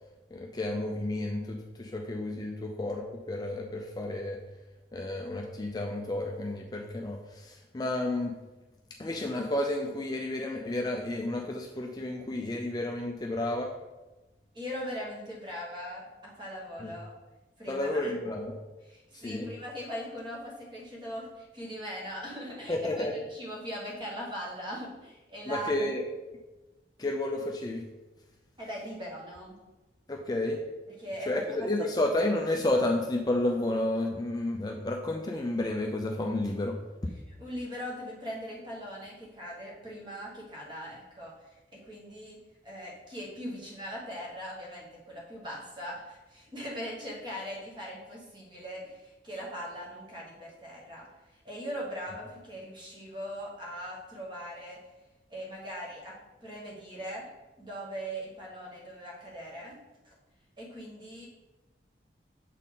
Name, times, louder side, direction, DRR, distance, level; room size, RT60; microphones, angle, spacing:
voice 1, 0.3-4.4 4.9-8.3 9.0-13.7 16.8-16.9 17.7-18.5 19.2-19.5 22.7-23.1 25.5-26.1 27.0-27.8 30.1-30.6 31.3-36.8, left 1 dB, 20° left, 1 dB, 0.4 m, -31 dB
voice 2, 14.5-17.1 17.6-18.1 18.8-25.7 28.6-29.5 31.0-31.9 37.3-42.4 42.6-54.8 55.3-57.2 57.6-59.8 60.0-60.1 60.6-61.3, equal, 25° right, -4 dB, 1.5 m, -40 dB
7.3 x 4.1 x 3.7 m, 1.1 s
head